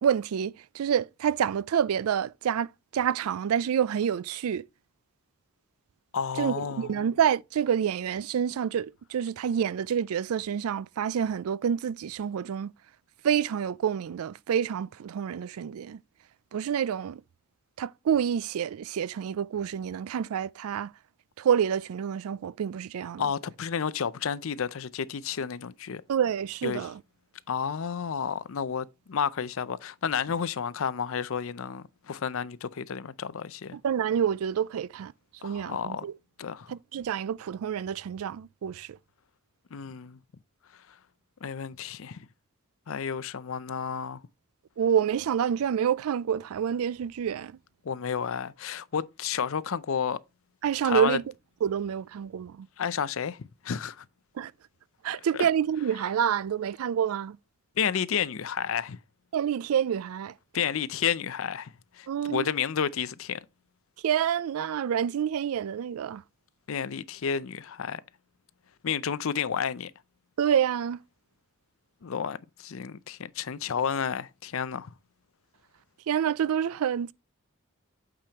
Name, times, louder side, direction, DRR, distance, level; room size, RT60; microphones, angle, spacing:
voice 1, 0.0-4.6 6.4-12.7 13.2-16.0 16.5-17.2 17.8-20.9 21.4-23.2 26.1-27.0 33.7-35.1 35.4-36.1 36.7-38.9 44.8-47.5 50.6-51.2 51.6-52.7 54.4-54.5 55.0-57.4 59.3-60.3 62.1-62.5 64.0-66.2 70.4-71.0 76.1-77.1, right 8 dB, 85° right, 0.3 m, -28 dB
voice 2, 6.1-7.0 23.2-26.0 26.6-26.9 27.5-33.8 35.4-36.1 36.4-36.7 39.7-40.2 41.4-42.2 42.9-44.2 47.8-50.2 50.8-51.2 52.8-54.0 55.4-55.5 57.8-59.0 60.5-63.4 66.7-68.0 68.8-69.9 72.0-74.9, left 7 dB, 70° left, 0.5 m, -31 dB
8.6 x 5.0 x 2.9 m
head